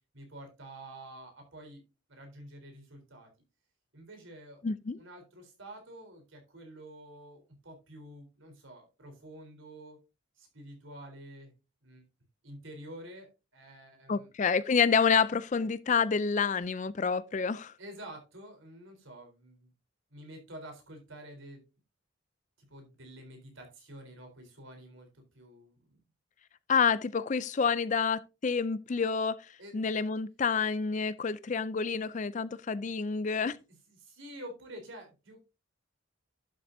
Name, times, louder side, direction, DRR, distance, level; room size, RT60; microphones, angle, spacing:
voice 1, 0.1-1.8 2.1-3.3 3.9-4.6 5.0-10.0 10.4-11.5 11.8-12.0 12.4-13.3 13.5-14.3 17.8-19.7 20.1-21.6 22.6-26.0 29.6-29.8 33.9-35.4, right 1 dB, 65° right, 3.7 m, -48 dB
voice 2, 4.6-5.0 14.1-17.7 26.7-33.6, left 5 dB, 35° left, 0.4 m, -28 dB
11.5 x 7.6 x 2.7 m
head